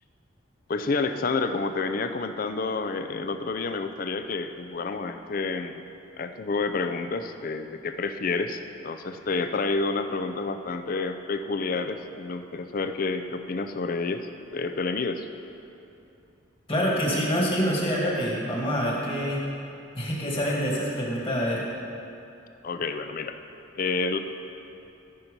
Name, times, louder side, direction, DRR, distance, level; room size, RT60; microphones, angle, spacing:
voice 1, 0.7-5.8 6.2-14.3 14.5-15.3 22.6-23.3 23.7-24.2, left 3 dB, 45° left, 8 dB, 0.4 m, -29 dB
voice 2, 16.7-19.4 19.9-21.6, equal, 30° left, -3 dB, 1.9 m, -26 dB
13.5 x 6.0 x 5.3 m, 2.7 s
head